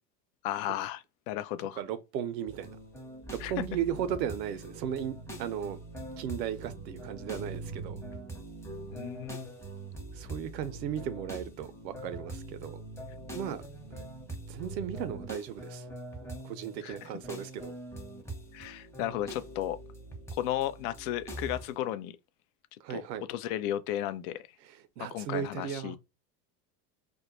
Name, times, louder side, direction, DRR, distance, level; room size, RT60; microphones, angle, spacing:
voice 1, 0.4-1.8 3.4-3.5 8.9-9.5 16.8-17.1 18.5-19.8 20.3-22.2 22.9-23.0 23.3-24.4 25.1-26.0, left 12 dB, 60° left, 0.5 m, -34 dB
voice 2, 1.8-2.8 3.3-5.8 6.2-8.0 10.1-12.8 13.3-13.6 14.5-15.8 16.4-17.7 22.8-23.3 25.0-26.0, right 9 dB, 85° right, 0.6 m, -36 dB
sound 1, 2.5-21.8, right 2 dB, 5° left, 0.8 m, -43 dB
2.2 x 2.1 x 2.9 m
hypercardioid pair, 85°, 49 cm